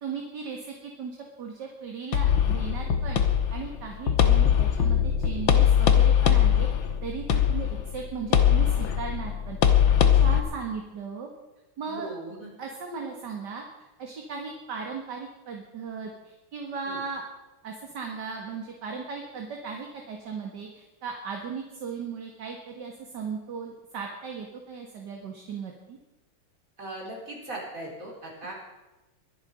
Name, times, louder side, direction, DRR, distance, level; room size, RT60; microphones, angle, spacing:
voice 1, 0.0-3.2 3.5-11.3 11.8-12.1 12.6-13.6 14.0-17.2 17.6-26.0, right 5 dB, 55° right, 1 dB, 2.3 m, -37 dB
sound 1, 2.1-10.4, left 9 dB, 70° left, 1.9 m, -21 dB
voice 2, 11.8-12.5 16.8-17.0 26.8-28.6, right 2 dB, 40° right, -2 dB, 4.6 m, -39 dB
22.5 x 10.5 x 5.3 m, 1.1 s
omnidirectional pair, 2.3 m